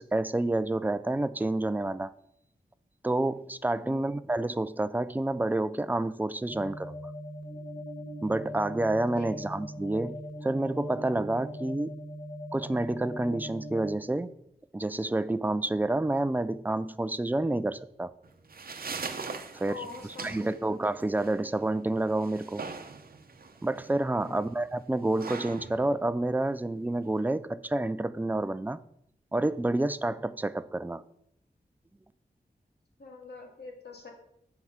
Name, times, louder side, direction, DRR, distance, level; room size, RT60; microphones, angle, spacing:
voice 1, 0.0-2.1 3.0-6.9 8.2-11.9 12.5-14.3 14.7-18.1 19.5-19.9 20.2-22.6 23.6-28.8 29.3-31.0, right 2 dB, 10° right, 14 dB, 0.4 m, -29 dB
voice 2, 3.7-4.1 9.2-9.3 19.7-20.6 24.1-24.4 33.0-34.1, left 4 dB, 90° left, 1 dB, 1.8 m, -44 dB
sound 1, 6.5-13.9, equal, 5° left, 3.1 m, -40 dB
sound 2, 18.2-27.2, right 4 dB, 65° right, 0.7 m, -42 dB
7.7 x 4.8 x 5.8 m, 0.74 s
wide cardioid pair, 80°, 17 cm